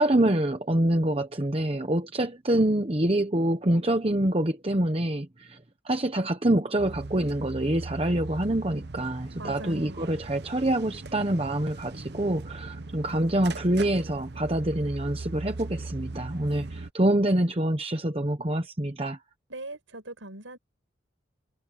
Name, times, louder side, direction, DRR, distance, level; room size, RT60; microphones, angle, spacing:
voice 1, 0.0-19.2, right 1 dB, 30° right, 1.1 m, -26 dB
sound 1, 6.8-16.9, right 2 dB, 55° right, 0.9 m, -39 dB
voice 2, 9.4-10.2 19.5-20.6, right 2 dB, 85° right, 6.6 m, -41 dB
head